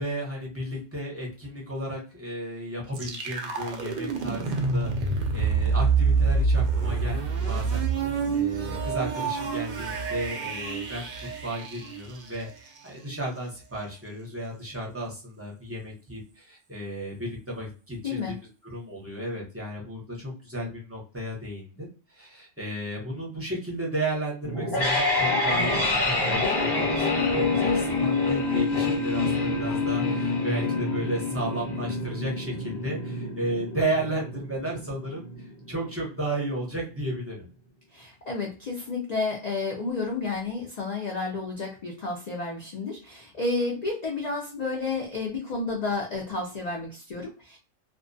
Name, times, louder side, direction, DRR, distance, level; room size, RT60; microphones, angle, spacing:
voice 1, 0.0-18.4 18.6-35.3 35.7-37.5, right 1 dB, 15° right, -3 dB, 0.5 m, -34 dB
sound 1, 2.9-12.8, right 4 dB, 70° right, 0.4 m, -27 dB
voice 2, 18.0-18.4 37.9-47.6, left 3 dB, 80° left, 0 dB, 0.3 m, -31 dB
sound 2, 24.4-35.4, left 3 dB, 20° left, 0.9 m, -26 dB
2.3 x 2.1 x 2.5 m, 0.35 s
omnidirectional pair, 1.3 m